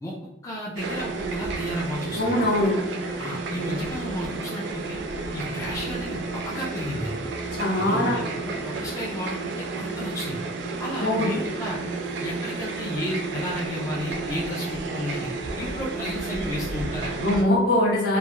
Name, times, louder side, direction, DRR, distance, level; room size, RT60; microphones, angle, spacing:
voice 1, 0.4-2.4 3.2-5.0 5.3-7.2 7.8-10.4 10.8-11.8 12.2-15.3 15.6-17.2, left 1 dB, 15° left, -5 dB, 0.3 m, -33 dB
sound 1, 0.8-17.4, right 3 dB, 70° right, 0.3 m, -31 dB
voice 2, 2.2-2.8 7.5-8.2 11.0-11.3 17.2-18.2, left 1 dB, 60° left, -4 dB, 0.8 m, -22 dB
2.2 x 2.0 x 2.9 m, 0.94 s
head